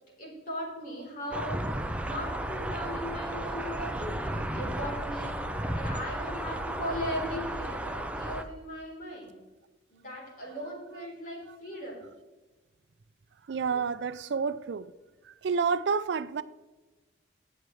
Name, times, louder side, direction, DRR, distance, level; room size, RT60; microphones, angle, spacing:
voice 1, 0.2-5.5 5.7-9.3 9.9-12.0, equal, 50° left, 3.6 m, -38 dB
sound 1, 1.3-8.4, right 1 dB, 5° right, 0.5 m, -34 dB
voice 2, 13.5-14.9 15.3-16.4, right 5 dB, 70° right, 0.4 m, -29 dB
18.0 x 6.6 x 3.2 m
head